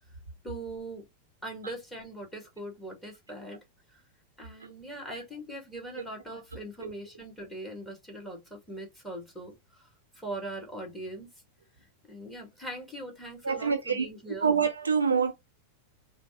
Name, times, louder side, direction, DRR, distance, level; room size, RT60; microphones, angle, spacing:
voice 1, 0.4-1.0 1.4-3.6 3.9-4.0 4.4-9.9 10.1-11.3 11.8-14.5, right 1 dB, 5° left, 2.1 m, -41 dB
voice 2, 13.4-14.1 14.4-15.3, right 6 dB, 75° right, 0.8 m, -26 dB
4.9 x 2.2 x 3.7 m
figure-of-eight pair, 90°, 0 cm